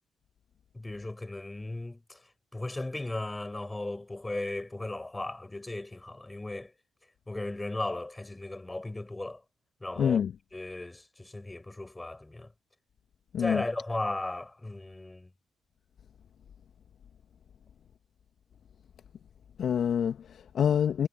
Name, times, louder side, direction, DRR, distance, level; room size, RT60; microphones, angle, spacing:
voice 1, 0.7-2.2 2.5-6.7 7.3-9.4 9.8-10.2 10.5-12.5 13.4-15.3, left 2 dB, 15° left, 6.9 m, -36 dB
voice 2, 10.0-10.4 13.3-13.6 19.6-21.1, left 8 dB, 55° left, 2.0 m, -26 dB
figure-of-eight pair, 40°, 0 cm